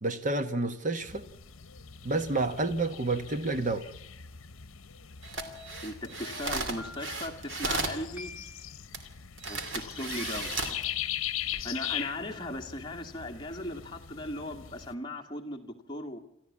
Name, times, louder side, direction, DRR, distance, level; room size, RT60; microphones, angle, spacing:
voice 1, 0.0-1.2 2.0-3.8, right 2 dB, 35° right, 10 dB, 1.1 m, -29 dB
sound 1, 1.0-14.9, left 11 dB, 75° left, 1.0 m, -41 dB
sound 2, 5.2-8.0 8.9-9.0 9.4-10.8 11.4-11.6, right 3 dB, 60° right, 2.6 m, -35 dB
sound 3, 5.4-6.0 6.8-7.4 8.2-8.7 9.5-10.0, left 2 dB, 10° right, 1.6 m, -48 dB
voice 2, 5.8-8.3 9.5-10.5 11.6-16.2, left 1 dB, 20° left, 1 dB, 2.0 m, -38 dB
28.5 x 13.5 x 8.5 m, 0.82 s
head